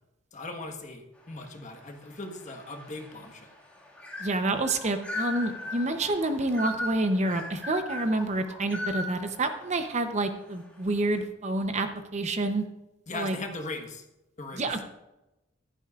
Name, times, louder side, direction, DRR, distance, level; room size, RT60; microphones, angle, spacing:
voice 1, 0.3-3.5 13.1-14.0 14.4-14.7, left 2 dB, 40° left, 4 dB, 1.4 m, -39 dB
sound 1, 1.6-10.6, left 1 dB, 5° left, 2.0 m, -39 dB
voice 2, 4.2-11.9 12.1-12.6 13.1-13.4 14.5-14.8, right 2 dB, 35° right, 7 dB, 0.8 m, -28 dB
14.5 x 11.5 x 2.5 m, 0.96 s
head